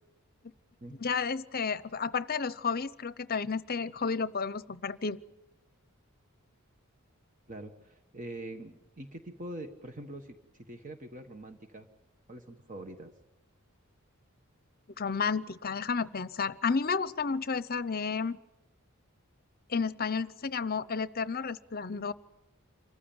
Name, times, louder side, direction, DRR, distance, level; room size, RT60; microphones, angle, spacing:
voice 1, 1.0-5.2 15.0-18.4 19.7-22.1, left 5 dB, 45° left, 17 dB, 0.8 m, -31 dB
voice 2, 7.5-11.9 12.3-13.1, right 1 dB, 35° right, 6 dB, 1.4 m, -44 dB
26.5 x 15.0 x 8.9 m, 0.99 s
head